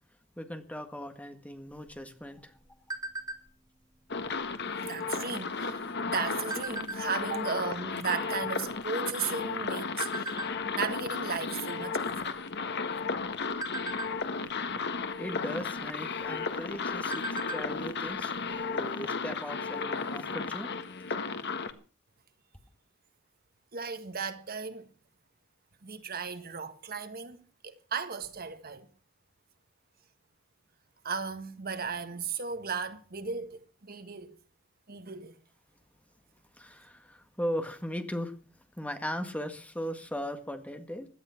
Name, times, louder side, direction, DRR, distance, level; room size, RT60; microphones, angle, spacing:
voice 1, 0.4-2.6 14.6-14.7 15.2-20.7 36.5-38.4 38.7-41.1, equal, 5° left, 1.8 m, -38 dB
sound 1, 1.7-3.7 4.2-4.5 4.7-5.1 5.8-7.3 7.9-8.0 8.3-9.5 10.0-10.5 11.0-11.3 11.6-11.8 12.2-12.8 13.2-14.6 15.7-15.8 16.2-16.3 16.7-17.8 18.0-18.1 18.5-18.6, right 2 dB, 20° right, 2.9 m, -39 dB
sound 2, 4.1-21.7, left 4 dB, 55° left, 1.6 m, -34 dB
voice 2, 4.8-10.4 10.7-12.4 23.7-24.9 25.8-28.9 31.0-34.4 34.9-35.4, right 5 dB, 50° right, 1.6 m, -36 dB
17.0 x 12.5 x 5.9 m
head